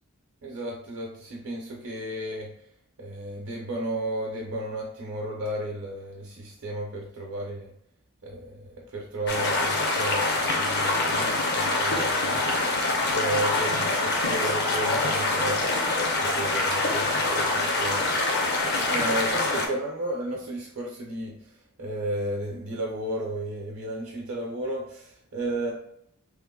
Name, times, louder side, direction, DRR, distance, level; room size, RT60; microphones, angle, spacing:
voice 1, 0.4-2.5 3.0-7.7 8.2-12.6 13.1-15.6 16.2-18.1 18.9-25.7, right 1 dB, 70° right, -3 dB, 0.7 m, -33 dB
sound 1, 9.3-19.7, left 2 dB, 50° left, 0.6 m, -25 dB
3.1 x 2.1 x 3.6 m, 0.72 s
head